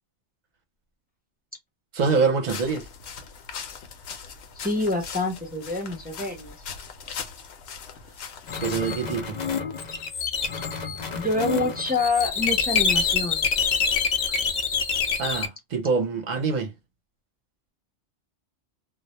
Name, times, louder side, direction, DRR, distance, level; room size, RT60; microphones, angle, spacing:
voice 1, 1.9-2.8 8.6-9.4 15.2-16.7, right 5 dB, 45° right, 0.6 m, -25 dB
sound 1, 2.5-9.1, left 6 dB, 75° left, 0.9 m, -40 dB
voice 2, 4.6-6.5 11.2-13.5, left 3 dB, 15° right, 0.3 m, -26 dB
sound 2, 8.5-15.5, left 5 dB, 60° left, 0.5 m, -26 dB
2.1 x 2.0 x 2.8 m
omnidirectional pair, 1.2 m